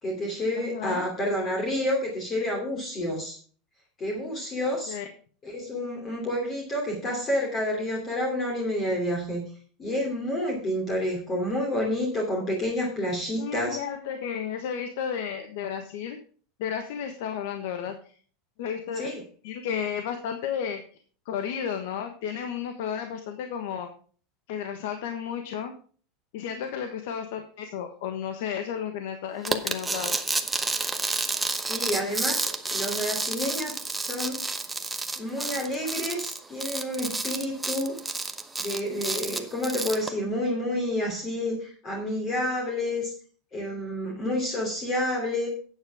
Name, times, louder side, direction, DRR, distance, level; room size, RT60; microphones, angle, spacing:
voice 1, 0.0-3.4 4.0-5.0 5.4-9.4 9.8-13.8 19.0-19.2 31.7-33.8 34.0-34.4 35.2-38.0 38.6-43.1 43.5-45.5, left 1 dB, 25° left, 0 dB, 3.1 m, -29 dB
voice 2, 0.6-1.1 4.9-5.1 13.4-16.2 16.6-17.9 18.6-19.1 19.4-20.8 21.3-23.9 24.5-25.7 26.3-30.2, left 8 dB, 70° left, 7 dB, 1.4 m, -32 dB
sound 1, 29.5-40.1, right 3 dB, 5° right, 0.9 m, -30 dB
12.0 x 8.9 x 3.6 m, 0.42 s
supercardioid pair, 155°, 0 cm